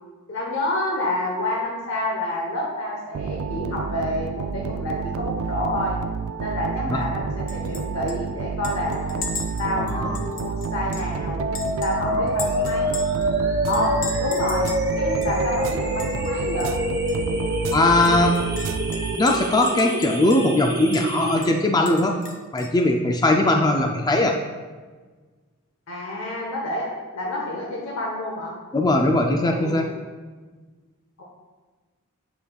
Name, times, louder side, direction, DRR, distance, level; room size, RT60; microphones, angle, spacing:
voice 1, 0.3-6.0 6.4-9.2 9.6-11.5 11.8-12.9 13.7-14.7 15.0-16.7 25.9-28.5 29.4-29.9 31.2-31.3, left 1 dB, 70° left, -2 dB, 1.0 m, -28 dB
sound 1, 3.1-19.6, right 5 dB, 70° right, 0.3 m, -30 dB
Chink clink, 7.5-7.8 8.1-8.2 8.6-11.1 11.5-13.3 13.7-14.9 15.2-15.3 15.6-16.3 16.6-16.8 17.1-17.2 17.7-20.6 20.9-21.1 21.4-22.8, left 3 dB, 40° left, 0.7 m, -37 dB
voice 2, 9.8-10.2 12.1-12.2 17.7-18.4 19.2-22.2 22.5-24.4 28.7-29.9, left 2 dB, 20° left, 3 dB, 0.4 m, -20 dB
sound 2, 11.4-21.4, equal, 15° right, 1.5 m, -27 dB
8.8 x 7.0 x 2.3 m, 1.4 s
head